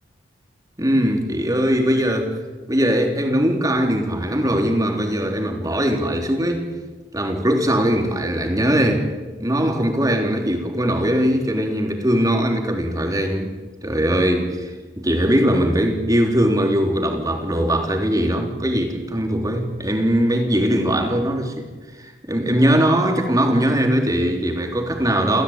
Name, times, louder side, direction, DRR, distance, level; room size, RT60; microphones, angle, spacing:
voice 1, 0.8-2.4 2.7-6.7 7.1-9.1 9.4-13.5 13.8-21.7 22.0-25.4, equal, 20° right, 3 dB, 3.6 m, -20 dB
29.5 x 15.5 x 9.1 m, 1.3 s
head